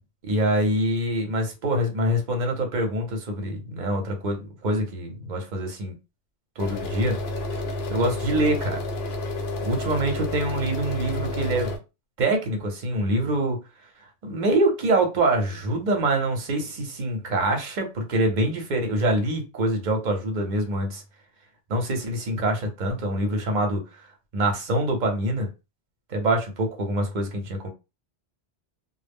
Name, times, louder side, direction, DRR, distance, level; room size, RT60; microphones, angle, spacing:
voice 1, 0.2-5.9 6.6-7.2 7.9-8.8 9.6-11.7 12.2-13.6 14.2-21.0 21.7-23.8 24.3-25.5 26.1-27.7, right 1 dB, 50° right, 0.8 m, -25 dB
sound 1, 6.6-11.8, left 2 dB, 70° left, 0.8 m, -30 dB
2.0 x 2.0 x 3.4 m
omnidirectional pair, 1.1 m